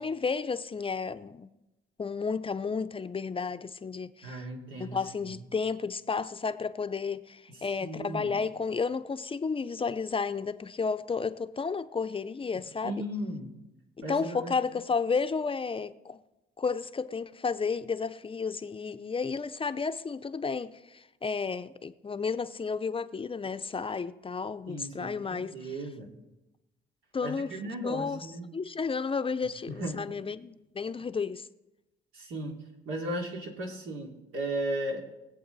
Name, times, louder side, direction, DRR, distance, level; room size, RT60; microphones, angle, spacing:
voice 1, 0.0-1.5 2.0-4.4 4.8-12.9 14.1-16.2 16.6-25.5 27.1-27.5 27.8-28.3 28.5-31.5, left 5 dB, 25° left, 0.6 m, -32 dB
voice 2, 4.2-5.4 7.5-8.4 12.8-13.5 14.0-14.5 24.7-26.2 27.2-28.5 29.7-30.0 32.1-32.6 32.8-35.0, right 1 dB, 85° right, 2.9 m, -36 dB
22.0 x 8.1 x 4.0 m
cardioid pair, 90°, 20 cm